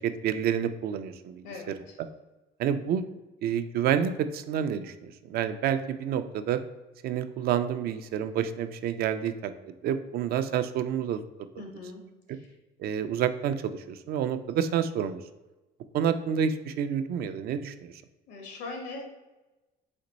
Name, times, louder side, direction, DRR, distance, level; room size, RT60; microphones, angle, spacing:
voice 1, 0.0-1.4 2.6-3.0 3.4-4.9 5.3-6.6 7.0-9.5 9.8-11.2 12.8-15.2 15.9-17.9, right 8 dB, 65° right, 10 dB, 0.4 m, -28 dB
voice 2, 1.4-1.9 11.6-12.0 12.3-12.5 18.3-19.0, left 3 dB, 85° left, 2 dB, 1.2 m, -40 dB
4.3 x 3.0 x 3.9 m, 1.1 s
cardioid pair, 110°, 17 cm